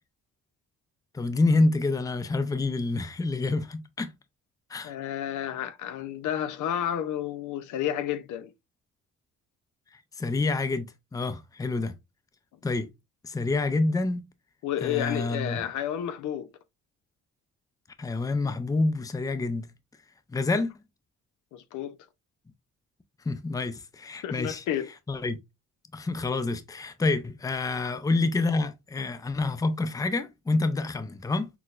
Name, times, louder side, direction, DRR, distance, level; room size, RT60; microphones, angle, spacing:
voice 1, 1.1-4.1 4.7-4.9 9.9-12.0 12.6-12.9 13.2-14.2 14.8-15.7 18.0-19.7 20.3-20.7 23.3-24.6 25.1-25.4 25.9-31.5, left 3 dB, 10° left, 0.5 m, -27 dB
voice 2, 4.8-8.5 14.6-16.5 21.5-22.0 24.2-24.9 27.8-27.9, left 10 dB, 80° left, 0.6 m, -31 dB
5.9 x 2.1 x 2.4 m
cardioid pair, 90°, 30 cm